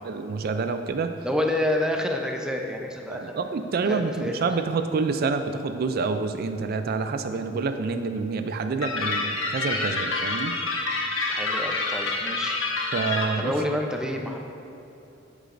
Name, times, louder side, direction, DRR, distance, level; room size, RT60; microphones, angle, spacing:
voice 1, 0.0-1.1 3.1-10.6 12.9-13.5, right 4 dB, 50° right, 8 dB, 0.4 m, -27 dB
voice 2, 1.2-3.3 3.8-4.3 11.3-12.6 13.4-14.4, left 1 dB, 5° right, 2 dB, 0.6 m, -28 dB
sound 1, 8.8-13.3, left 3 dB, 85° left, 1.1 m, -27 dB
10.0 x 8.2 x 2.6 m, 2.9 s
head